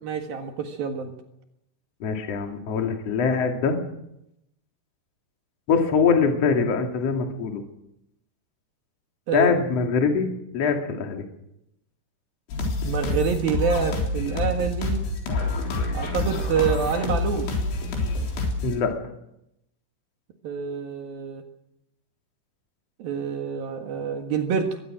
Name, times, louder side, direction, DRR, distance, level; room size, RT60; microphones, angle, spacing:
voice 1, 0.0-1.1 9.3-9.5 12.8-15.0 15.9-17.5 20.4-21.4 23.0-24.8, right 6 dB, 60° right, 4 dB, 3.0 m, -27 dB
voice 2, 2.0-3.8 5.7-7.6 9.3-10.3 10.5-11.2 18.6-18.9, left 5 dB, 40° left, 3 dB, 2.7 m, -23 dB
sound 1, 12.5-18.7, left 2 dB, 70° left, 6.1 m, -27 dB
23.0 x 19.5 x 6.3 m, 0.82 s
omnidirectional pair, 5.7 m